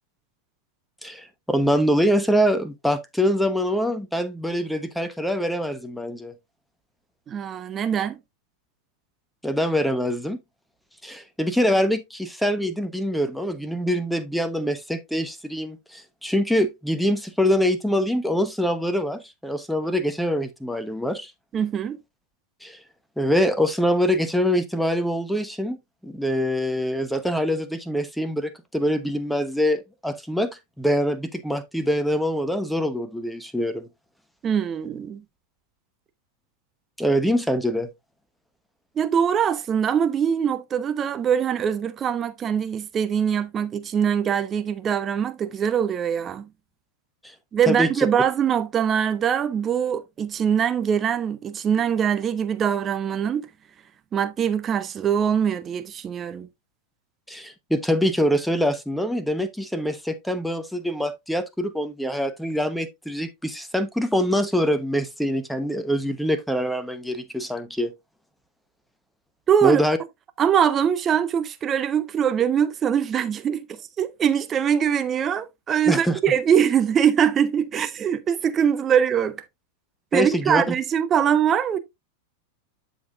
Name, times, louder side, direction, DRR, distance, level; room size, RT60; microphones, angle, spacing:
voice 1, 1.0-6.3 9.4-10.4 11.0-21.3 22.6-22.8 23.2-25.8 26.0-30.5 30.8-33.9 37.0-37.9 47.2-47.3 47.7-48.1 57.3-67.9 69.6-70.0 75.9-76.2 80.1-80.7, equal, ahead, 1.1 m, -24 dB
voice 2, 7.3-8.2 21.5-22.0 34.4-35.2 39.0-46.5 47.5-53.5 54.1-56.5 69.5-69.8 70.4-73.7 74.0-79.4 80.1-81.8, right 8 dB, 25° right, 0.9 m, -22 dB
11.5 x 5.1 x 2.5 m
figure-of-eight pair, 90°, 0 cm